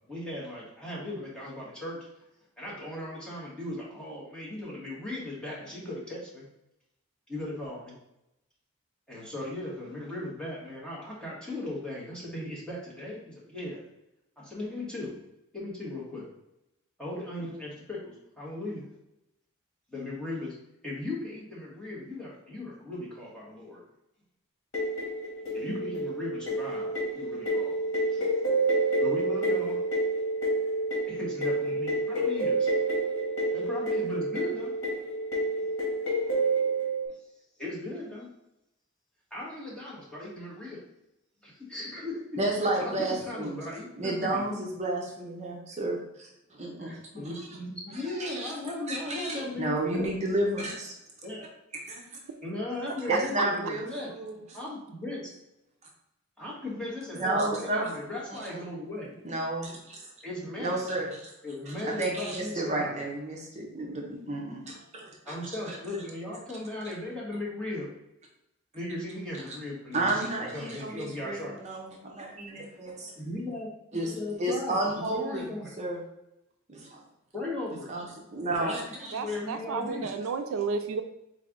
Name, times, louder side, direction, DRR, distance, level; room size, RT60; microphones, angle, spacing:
voice 1, 0.1-2.0 2.6-6.4 7.3-8.0 9.1-13.8 14.4-15.2 15.5-16.3 17.0-18.8 19.9-20.5 20.8-23.8 25.5-28.3 28.8-29.8 31.1-32.7 33.5-34.7 37.1-37.3 37.6-38.3 39.3-40.8 41.4-42.2 42.6-44.4 46.8-50.2 51.2-51.5 52.4-54.1 54.5-55.3 56.4-59.2 60.2-60.8 61.4-63.0 65.2-67.9 68.7-71.6 73.2-73.7 74.0-75.7 77.3-77.9 78.5-80.1, left 2 dB, 5° left, -6 dB, 1.4 m, -37 dB
sound 1, 24.7-37.1, right 2 dB, 65° left, 1.6 m, -28 dB
voice 2, 42.4-43.6 44.0-47.0 47.3-47.5 48.0-48.5 48.9-50.9 51.7-52.1 53.1-53.9 54.1-54.4 57.1-57.9 58.3-58.7 59.2-60.1 60.6-61.3 61.7-65.5 69.9-72.9 73.9-74.1 74.4-75.5 75.8-76.0 76.7-77.0 77.9-78.0 78.3-79.4, right 2 dB, 35° right, -1 dB, 0.7 m, -32 dB
voice 3, 79.1-81.0, right 5 dB, 75° right, 8 dB, 0.4 m, -32 dB
4.2 x 3.3 x 3.7 m, 0.87 s
head